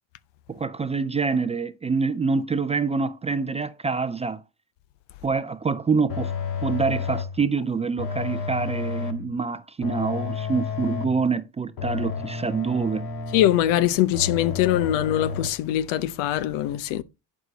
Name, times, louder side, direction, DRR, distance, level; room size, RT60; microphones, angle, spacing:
voice 1, 0.5-4.4 5.2-6.3 6.6-13.0, right 4 dB, 15° right, 0.4 m, -26 dB
sound 1, 6.1-7.4 8.0-9.3 9.8-11.3 11.8-13.7 14.1-15.5, left 5 dB, 50° left, 1.8 m, -31 dB
voice 2, 13.3-17.0, left 12 dB, 75° left, 0.8 m, -22 dB
11.0 x 4.9 x 4.0 m
supercardioid pair, 105°, 44 cm